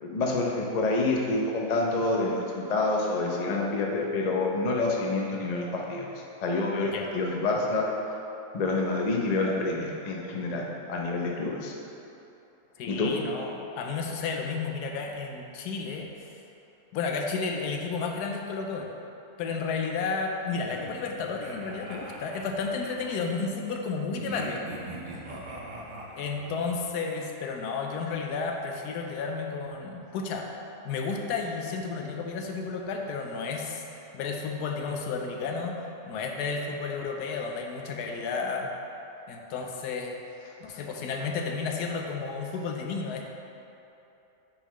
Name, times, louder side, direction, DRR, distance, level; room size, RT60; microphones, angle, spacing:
voice 1, 0.0-6.0 6.4-7.9 8.5-11.7 12.9-13.1 40.7-40.8, left 2 dB, 50° left, -1 dB, 0.5 m, -27 dB
voice 2, 12.8-16.1 16.9-18.9 19.4-24.6 26.2-30.5 30.8-33.8 34.1-35.7 36.1-38.7 39.3-40.1 40.6-43.3, left 4 dB, 85° left, 2 dB, 1.2 m, -32 dB
sound 1, 20.5-23.2 24.2-26.8, right 1 dB, 45° right, 0.6 m, -41 dB
8.9 x 4.0 x 3.1 m, 2.9 s
omnidirectional pair, 1.7 m